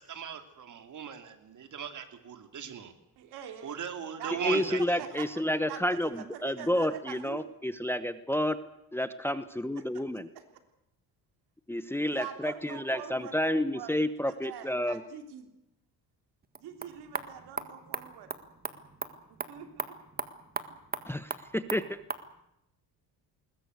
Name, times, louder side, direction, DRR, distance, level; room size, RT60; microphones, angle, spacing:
voice 1, 0.0-2.9 3.6-5.0, right 7 dB, 50° right, 7 dB, 3.0 m, -38 dB
voice 2, 3.2-3.8 4.2-4.7 5.0-5.3 5.7-7.4 9.8-9.9 10.4-10.5 12.1-15.5 16.6-18.3 19.3-20.0, right 9 dB, 80° right, 6 dB, 3.6 m, -44 dB
voice 3, 4.3-8.6 8.9-10.3 11.7-15.0 21.1-22.0, left 1 dB, 5° left, 12 dB, 1.0 m, -30 dB
sound 1, 16.4-22.3, right 4 dB, 25° right, 1.7 m, -39 dB
21.0 x 20.5 x 8.2 m, 0.83 s
cardioid pair, 115°, 39 cm